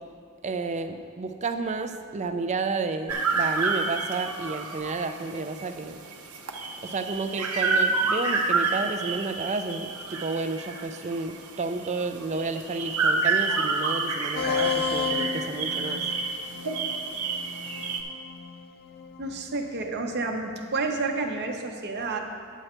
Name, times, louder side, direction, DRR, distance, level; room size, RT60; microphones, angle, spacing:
voice 1, 0.4-6.0 6.8-16.0, right 3 dB, 30° right, 8 dB, 0.4 m, -31 dB
sound 1, 3.1-18.0, right 4 dB, 90° right, 0.9 m, -29 dB
sound 2, 14.4-19.7, left 8 dB, 45° left, 0.3 m, -33 dB
voice 2, 19.2-22.2, right 3 dB, 50° right, 3 dB, 0.8 m, -30 dB
9.2 x 7.8 x 4.4 m, 2.1 s
head